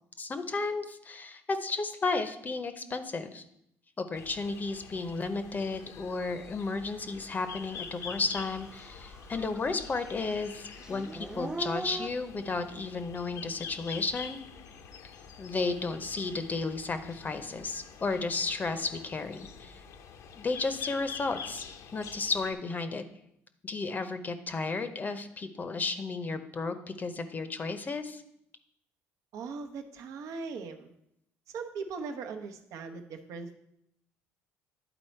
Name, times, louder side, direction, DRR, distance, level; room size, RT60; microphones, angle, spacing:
voice 1, 0.2-3.4 4.0-14.4 15.4-19.8 20.4-21.6 21.9-23.0 23.6-28.2, left 3 dB, 30° left, 9 dB, 0.7 m, -33 dB
sound 1, 4.1-22.5, left 6 dB, 65° left, 0.7 m, -46 dB
Dog / Siren, 7.8-7.9 8.3-9.7 10.0-12.1, right 2 dB, 15° right, 0.3 m, -39 dB
voice 2, 29.3-30.9 31.5-33.5, right 4 dB, 70° right, 5 dB, 0.8 m, -39 dB
10.0 x 4.1 x 4.4 m, 0.77 s
supercardioid pair, 85°, 6 cm